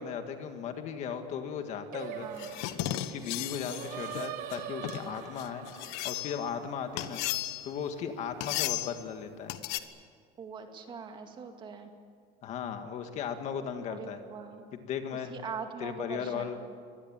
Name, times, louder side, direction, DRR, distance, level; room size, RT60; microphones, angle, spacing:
voice 1, 0.0-2.3 2.9-5.7 6.0-7.2 7.6-9.5 12.4-14.2 14.7-15.4 15.8-16.6, left 7 dB, 40° left, 7 dB, 1.9 m, -36 dB
Singing, 1.9-7.2, right 11 dB, 50° right, 1.3 m, -43 dB
voice 2, 2.2-2.7 10.4-11.9 13.9-14.6 15.3-16.7, right 6 dB, 25° right, 5 dB, 2.2 m, -42 dB
sound 1, 2.4-6.5 7.0-7.8 8.4-9.0 9.5-9.8, left 14 dB, 85° left, 1.4 m, -35 dB
24.5 x 19.5 x 9.0 m, 2.1 s
cardioid pair, 175°, 17 cm